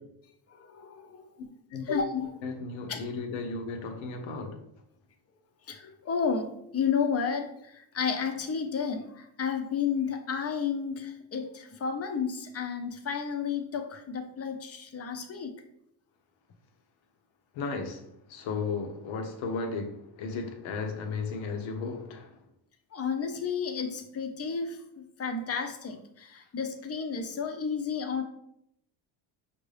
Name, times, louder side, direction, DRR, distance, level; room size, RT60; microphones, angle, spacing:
voice 1, 0.5-1.3 1.9-2.3 2.9-3.0 5.7-15.6 22.9-28.2, left 6 dB, 30° left, 0.7 m, -32 dB
voice 2, 2.4-4.6 17.5-22.3, left 4 dB, 75° left, 0.9 m, -35 dB
5.9 x 2.6 x 3.3 m
cardioid pair, 95°, 48 cm